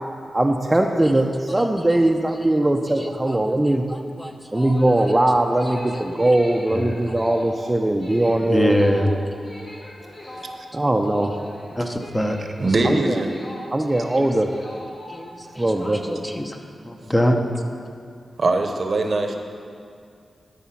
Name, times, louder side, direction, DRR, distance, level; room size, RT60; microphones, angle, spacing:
voice 1, 0.3-3.8 4.5-9.0 10.7-11.3 12.8-13.2 13.7-14.5 15.6-16.2, right 1 dB, 20° right, 2 dB, 0.5 m, -20 dB
voice 2, 3.9-4.7 5.9-6.0 6.7-6.9 8.4-9.1 11.8-12.4 15.1-16.6 16.9-17.4, equal, 15° left, 3 dB, 0.9 m, -24 dB
sound 1, 4.3-16.4, left 1 dB, 45° left, 2.1 m, -40 dB
voice 3, 12.6-13.3 18.4-19.4, right 2 dB, 55° right, 5 dB, 0.8 m, -21 dB
12.5 x 4.9 x 5.8 m, 2.3 s
cardioid pair, 65°, 0 cm